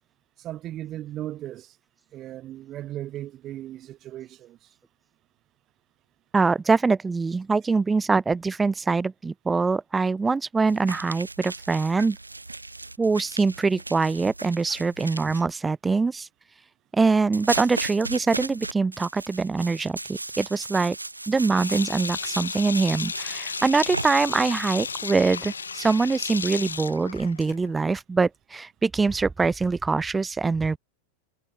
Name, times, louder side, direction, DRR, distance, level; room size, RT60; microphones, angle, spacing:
voice 1, 0.4-1.7 2.1-4.6, right 13 dB, 30° right, 1.2 m, -36 dB
voice 2, 6.3-12.2 13.0-16.3 16.9-21.0 21.3-30.8, right 4 dB, 10° right, 0.5 m, -23 dB
sound 1, 10.7-15.4 17.3-24.1, right 2 dB, 85° right, 4.1 m, -36 dB
Sink (filling or washing), 21.4-27.8, left 5 dB, 75° left, 2.7 m, -34 dB
figure-of-eight pair, 90°, 0 cm